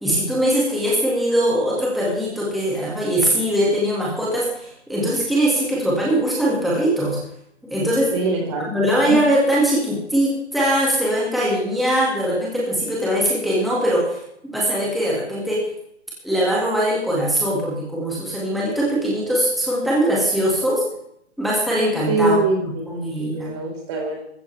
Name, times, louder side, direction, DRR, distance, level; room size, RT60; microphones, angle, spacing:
voice 1, 0.0-7.2 7.7-8.2 8.7-14.2 14.4-15.7 16.2-20.8 21.4-22.4 22.9-23.5, right 1 dB, ahead, -6 dB, 1.9 m, -21 dB
voice 2, 8.1-9.2 22.1-24.2, right 2 dB, 25° right, 1 dB, 4.2 m, -24 dB
15.0 x 14.5 x 3.4 m, 0.72 s
hypercardioid pair, 170°, 36 cm